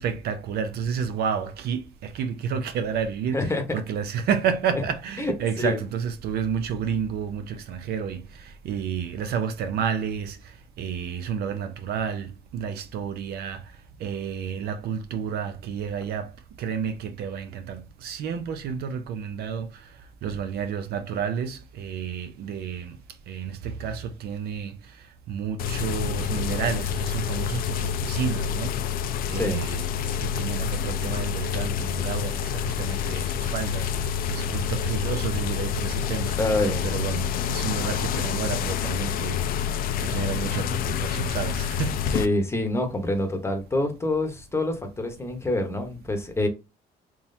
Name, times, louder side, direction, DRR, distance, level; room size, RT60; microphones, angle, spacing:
voice 1, 0.0-10.4 10.8-13.6 14.0-16.3 16.6-19.7 20.2-23.0 23.3-24.7 25.3-28.7 29.3-29.9 30.2-33.9 34.3-36.3 36.8-39.4 40.0-42.0, right 7 dB, 70° right, 0.6 m, -30 dB
voice 2, 5.2-5.8 29.3-29.7 36.4-36.9 42.1-46.5, left 2 dB, 15° left, 0.9 m, -26 dB
sound 1, 25.6-42.3, left 8 dB, 60° left, 0.4 m, -28 dB
3.7 x 3.0 x 2.6 m
cardioid pair, 110°, 17 cm